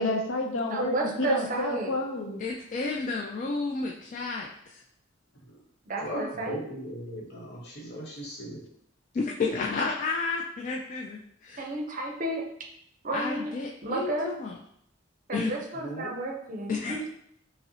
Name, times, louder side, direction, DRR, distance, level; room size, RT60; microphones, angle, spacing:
voice 1, 0.0-2.4, left 2 dB, 90° left, 2 dB, 0.6 m, -30 dB
voice 2, 0.7-2.0 5.8-6.6 11.6-12.4 13.0-13.5 13.8-14.3 15.3-17.2, right 2 dB, 45° right, 1 dB, 0.6 m, -32 dB
voice 3, 2.4-4.8 9.1-11.6 13.1-14.5 15.3-15.5 16.7-17.0, left 4 dB, 40° left, -1 dB, 0.3 m, -31 dB
voice 4, 6.0-8.6 15.8-16.1, equal, 60° left, -2 dB, 1.0 m, -37 dB
5.3 x 2.0 x 2.7 m, 0.73 s
head